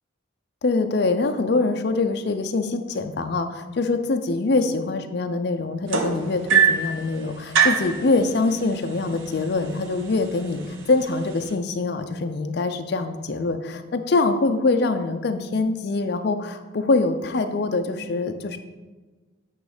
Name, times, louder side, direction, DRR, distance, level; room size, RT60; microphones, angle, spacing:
voice 1, 0.6-18.6, left 3 dB, 55° left, 7 dB, 0.5 m, -24 dB
sound 1, 5.9-6.9 7.5-7.9 9.0-9.1 9.5-9.8 10.6-10.7, right 6 dB, 70° right, 0.7 m, -20 dB
9.0 x 3.1 x 4.9 m, 1.3 s
head